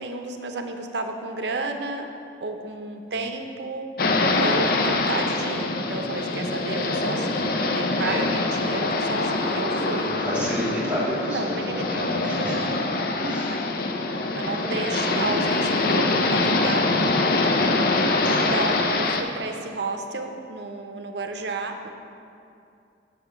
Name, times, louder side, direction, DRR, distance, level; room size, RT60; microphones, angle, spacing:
voice 1, 0.0-2.1 2.4-3.9 4.4-10.1 11.3-13.0 13.3-13.4 14.3-17.2 18.2-21.9, right 3 dB, 70° right, 5 dB, 0.6 m, -32 dB
sound 1, 4.0-19.2, left 2 dB, 55° left, 0.5 m, -24 dB
voice 2, 8.0-8.4 10.0-12.9 13.1-13.6 18.1-18.5, equal, 10° right, -8 dB, 1.9 m, -31 dB
6.1 x 5.0 x 6.8 m, 2.5 s
head